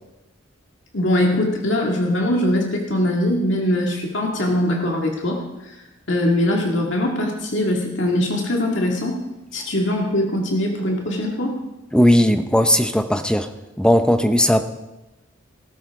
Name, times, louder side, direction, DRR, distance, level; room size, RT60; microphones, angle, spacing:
voice 1, 0.9-5.4 6.1-9.2 9.5-11.5, left 1 dB, 65° left, 0 dB, 2.2 m, -21 dB
voice 2, 11.9-13.5 13.8-14.7, equal, 5° left, 8 dB, 0.7 m, -17 dB
19.5 x 12.5 x 3.7 m, 1.0 s
head